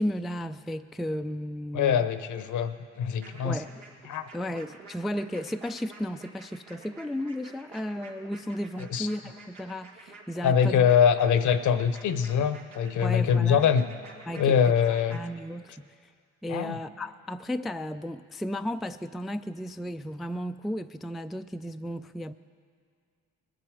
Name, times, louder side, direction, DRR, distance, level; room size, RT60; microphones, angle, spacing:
voice 1, 0.0-2.1 3.4-3.8 4.3-10.8 13.0-13.6 14.3-14.6 15.1-15.9 16.4-22.3, equal, ahead, 8 dB, 0.3 m, -34 dB
voice 2, 1.7-3.6 4.1-4.3 8.9-9.1 10.4-13.9 14.4-15.2 16.5-16.8, left 7 dB, 60° left, 12 dB, 0.8 m, -23 dB
sound 1, 3.2-15.2, right 3 dB, 85° right, 1.8 m, -50 dB
20.0 x 7.7 x 4.8 m, 2.2 s
hypercardioid pair, 55°, 33 cm